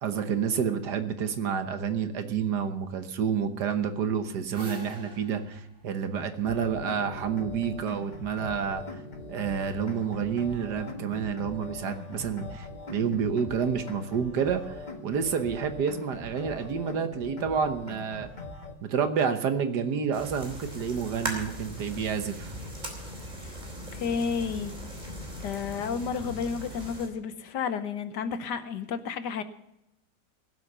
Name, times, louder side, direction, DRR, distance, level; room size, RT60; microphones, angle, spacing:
voice 1, 0.0-9.0 9.3-18.3 18.8-22.5, right 7 dB, 65° right, 9 dB, 1.6 m, -29 dB
sound 1, 4.4-7.2, left 1 dB, 45° right, 2.8 m, -45 dB
sound 2, 6.5-18.7, left 2 dB, 25° left, 1.5 m, -41 dB
sound 3, 20.1-27.1, equal, 20° right, 3.3 m, -39 dB
voice 2, 23.9-24.7 25.4-29.4, left 6 dB, 70° left, 11 dB, 1.5 m, -31 dB
18.0 x 8.0 x 6.8 m, 0.84 s
omnidirectional pair, 2.0 m